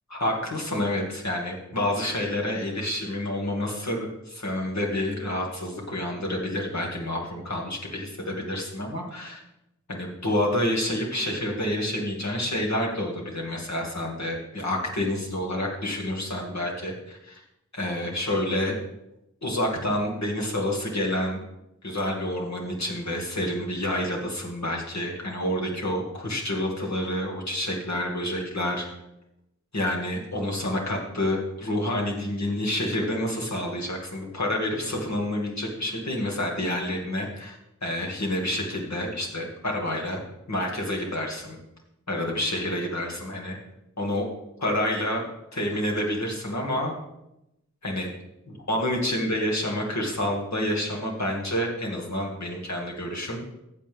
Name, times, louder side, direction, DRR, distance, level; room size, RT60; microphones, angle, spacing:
voice 1, 0.1-9.4 9.9-17.4 17.7-18.8 19.4-21.4 21.8-28.9 29.7-40.2 40.5-41.6 42.1-43.6 44.0-44.2 44.6-45.3 45.5-46.9 47.8-48.1 48.7-53.4, left 1 dB, 70° left, -1 dB, 2.4 m, -28 dB
15.5 x 7.5 x 3.6 m, 0.87 s
wide cardioid pair, 65°, 29 cm